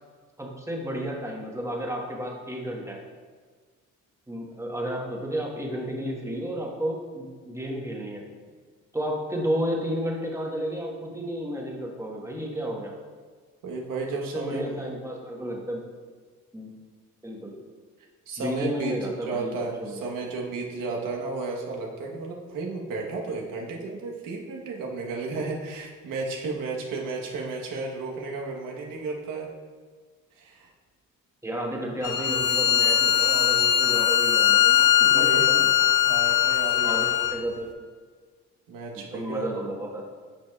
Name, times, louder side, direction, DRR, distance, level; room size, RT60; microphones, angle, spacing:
voice 1, 0.4-3.0 4.3-8.2 8.9-12.9 14.3-15.8 16.5-16.7 17.2-17.5 18.4-20.0 31.4-35.7 36.8-37.7 38.9-40.1, equal, 10° right, -1 dB, 1.2 m, -32 dB
voice 2, 13.6-14.9 18.3-19.0 19.3-29.5 30.4-30.7 35.0-35.5 36.0-37.2 38.7-39.5, right 3 dB, 75° right, 0 dB, 1.2 m, -33 dB
Bowed string instrument, 32.0-37.4, left 10 dB, 70° left, 0.6 m, -21 dB
8.9 x 5.0 x 2.3 m, 1.5 s
cardioid pair, 75°, 33 cm